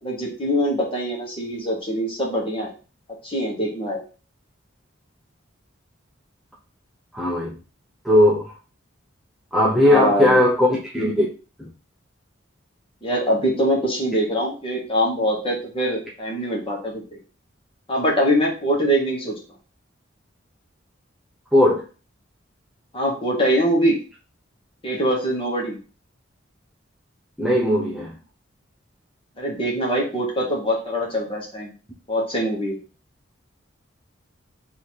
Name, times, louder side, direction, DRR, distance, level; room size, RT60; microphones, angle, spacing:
voice 1, 0.0-2.7 3.2-4.0 9.8-10.4 13.0-17.0 17.9-19.3 22.9-24.0 24.8-25.8 29.4-31.7 32.1-32.8, equal, 25° left, -2 dB, 1.4 m, -23 dB
voice 2, 7.1-7.6 8.0-8.5 9.5-11.3 11.6-11.7 21.5-21.8 27.4-28.2, left 1 dB, ahead, -6 dB, 0.6 m, -18 dB
3.3 x 2.9 x 4.4 m, 0.35 s
head